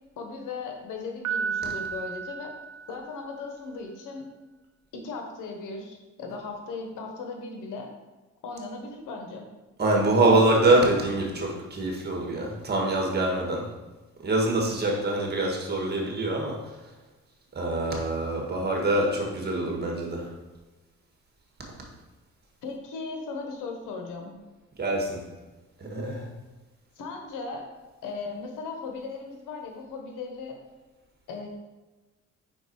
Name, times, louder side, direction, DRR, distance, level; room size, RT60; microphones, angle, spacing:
voice 1, 0.2-2.5 2.9-4.2 4.9-7.9 8.4-9.5 22.6-24.4 27.0-27.6 28.0-30.5 31.3-31.6, left 4 dB, 90° left, 2 dB, 1.2 m, -37 dB
Piano, 1.2-3.4, right 6 dB, 55° right, 0.7 m, -33 dB
voice 2, 9.8-13.7 14.2-16.9 17.5-20.4 24.8-25.3 25.8-26.3, right 2 dB, 35° right, -1 dB, 1.7 m, -25 dB
5.2 x 4.6 x 4.6 m, 1.1 s
cardioid pair, 90°, 30 cm